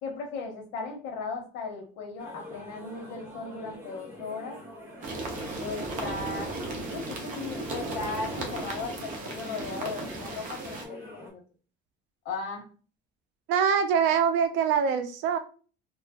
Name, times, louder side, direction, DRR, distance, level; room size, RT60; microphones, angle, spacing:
voice 1, 0.0-4.6 5.6-11.4 12.2-12.6, left 4 dB, 85° left, 3 dB, 0.9 m, -37 dB
sound 1, 2.2-11.3, equal, 15° right, 1.3 m, -45 dB
sound 2, 5.0-10.8, right 2 dB, 45° right, 0.7 m, -36 dB
voice 2, 13.5-15.4, right 7 dB, 80° right, 9 dB, 0.5 m, -24 dB
2.8 x 2.4 x 2.3 m, 0.37 s
cardioid pair, 150°, 19 cm